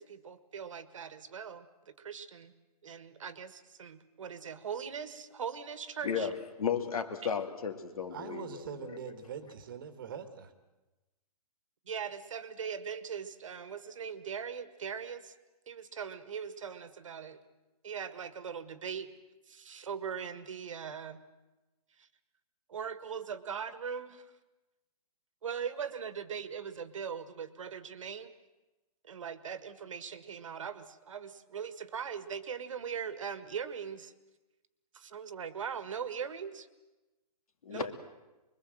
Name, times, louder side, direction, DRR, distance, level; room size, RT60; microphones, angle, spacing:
voice 1, 0.0-2.5 2.8-6.3 11.9-15.3 15.7-17.4 17.8-19.1 19.5-21.2 22.0-22.1 22.7-24.3 25.4-28.3 29.0-34.1 34.9-36.7 37.7-37.9, right 7 dB, 55° right, 12 dB, 1.7 m, -40 dB
voice 2, 6.0-9.1 37.6-37.9, left 7 dB, 65° left, 7 dB, 2.9 m, -35 dB
voice 3, 8.1-10.5, right 7 dB, 35° right, 10 dB, 1.7 m, -43 dB
25.0 x 22.5 x 7.8 m, 1.1 s
hypercardioid pair, 175°, 20 cm